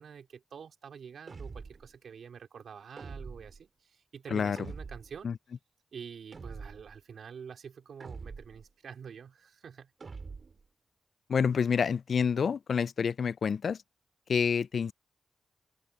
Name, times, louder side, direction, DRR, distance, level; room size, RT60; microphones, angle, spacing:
voice 1, 0.0-5.3 5.9-9.9, right 7 dB, 85° right, 3.8 m, -47 dB
sound 1, 1.3-1.9 3.0-3.6 4.6-5.2 6.3-7.0 8.0-8.7 10.0-10.7, right 4 dB, 55° right, 2.9 m, -44 dB
voice 2, 11.3-13.8 14.3-14.9, left 6 dB, 70° left, 0.3 m, -28 dB
open air
cardioid pair, 85°, 0 cm